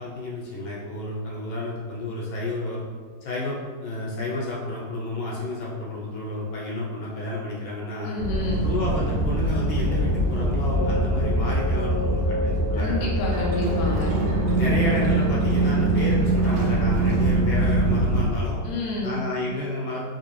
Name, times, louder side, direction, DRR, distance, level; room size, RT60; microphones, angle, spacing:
voice 1, 0.0-2.8 3.2-8.1 8.6-13.2 14.6-18.6 19.0-20.1, left 2 dB, 85° left, -5 dB, 1.6 m, -31 dB
voice 2, 8.0-8.6 12.7-14.2 18.6-19.3, left 2 dB, 65° left, -4 dB, 0.9 m, -29 dB
sound 1, 8.2-18.3, right 1 dB, 65° right, 1.0 m, -23 dB
3.9 x 2.7 x 3.0 m, 1.5 s
omnidirectional pair, 2.1 m